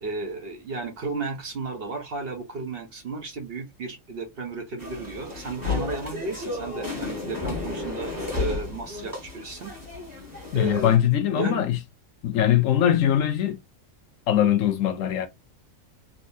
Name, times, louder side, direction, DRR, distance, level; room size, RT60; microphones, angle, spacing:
voice 1, 0.0-9.7 10.5-11.0 11.4-11.6, right 3 dB, 50° right, 0.8 m, -33 dB
sound 1, 4.8-11.0, left 3 dB, 15° right, 1.5 m, -33 dB
voice 2, 10.5-11.8 12.2-13.6 14.3-15.3, left 11 dB, 70° left, 0.9 m, -21 dB
3.6 x 2.6 x 2.6 m
omnidirectional pair, 1.5 m